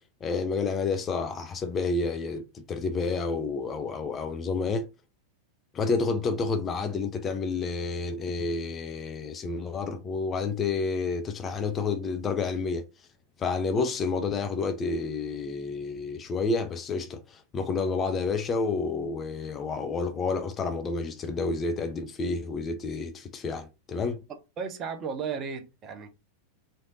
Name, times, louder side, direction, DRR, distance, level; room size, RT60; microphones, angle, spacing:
voice 1, 0.2-4.9 5.7-12.8 13.4-24.2, left 4 dB, 25° left, 0.5 m, -30 dB
voice 2, 24.6-26.1, right 6 dB, 30° right, 0.7 m, -34 dB
3.2 x 2.7 x 2.5 m
figure-of-eight pair, 90°, 0 cm